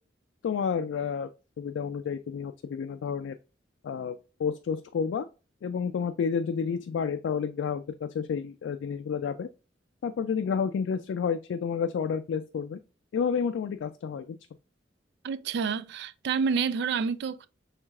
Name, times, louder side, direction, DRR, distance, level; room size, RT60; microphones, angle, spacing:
voice 1, 0.4-1.3 1.6-3.4 3.8-5.3 5.6-9.5 10.0-12.8 13.1-14.4, left 6 dB, 85° left, 0.3 m, -30 dB
voice 2, 15.2-17.5, right 6 dB, 65° right, 0.3 m, -28 dB
4.6 x 3.2 x 2.3 m
head